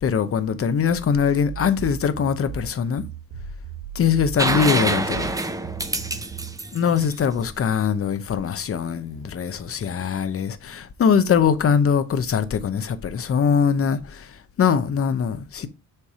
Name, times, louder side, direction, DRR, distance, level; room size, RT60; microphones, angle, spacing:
voice 1, 0.0-3.0 3.9-5.3 6.7-14.3 14.6-15.7, left 7 dB, 35° left, 0.8 m, -22 dB
sound 1, 1.5-6.6, right 10 dB, 65° right, 1.3 m, -37 dB
sound 2, 4.4-8.1 10.0-10.1, right 2 dB, 10° right, 0.5 m, -26 dB
7.1 x 3.4 x 4.8 m
cardioid pair, 125°, 38 cm